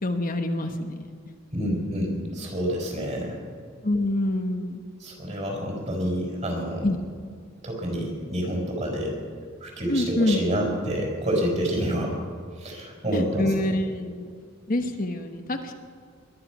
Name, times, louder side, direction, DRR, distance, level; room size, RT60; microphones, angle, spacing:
voice 1, 0.0-1.1 3.8-4.8 5.3-5.4 6.8-7.0 9.9-10.4 13.1-14.3 14.7-15.7, left 1 dB, 45° left, 5 dB, 1.1 m, -26 dB
voice 2, 1.5-3.4 5.0-6.9 7.6-9.1 9.6-12.2 12.6-13.5, equal, 35° right, -1 dB, 4.9 m, -28 dB
22.0 x 11.0 x 6.1 m, 2.1 s
head